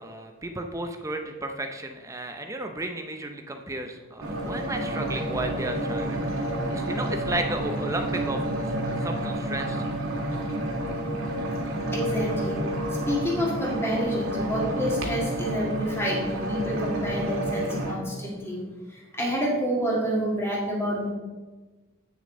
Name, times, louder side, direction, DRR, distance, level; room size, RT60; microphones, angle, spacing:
voice 1, 0.0-9.8, right 2 dB, 15° right, 5 dB, 0.6 m, -34 dB
sound 1, 4.2-17.9, right 1 dB, 70° right, 1.8 m, -29 dB
voice 2, 11.9-12.6 13.1-18.6 18.9-21.1, equal, 10° left, -3 dB, 1.8 m, -28 dB
8.7 x 6.9 x 3.7 m, 1.3 s
head